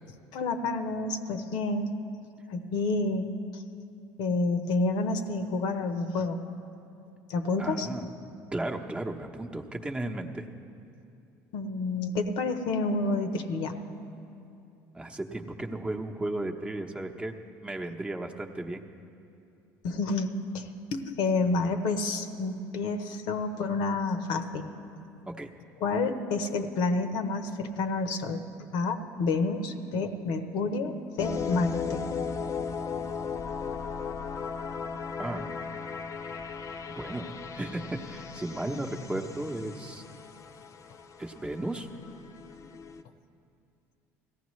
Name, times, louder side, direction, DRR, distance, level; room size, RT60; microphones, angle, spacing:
voice 1, 0.3-1.9 2.5-3.6 4.2-6.4 7.3-7.9 11.5-13.7 19.8-24.7 25.8-28.4 28.7-32.0, left 3 dB, 70° left, 7 dB, 0.9 m, -29 dB
voice 2, 7.6-8.1 8.5-10.4 14.9-17.3 17.6-18.8 25.4-25.5 35.2-35.5 36.9-40.0 41.2-41.9, right 1 dB, 15° right, 2 dB, 0.9 m, -35 dB
sound 1, 31.2-43.0, left 5 dB, 40° left, 0.7 m, -37 dB
17.0 x 14.5 x 3.2 m, 2.7 s
supercardioid pair, 80°, 8 cm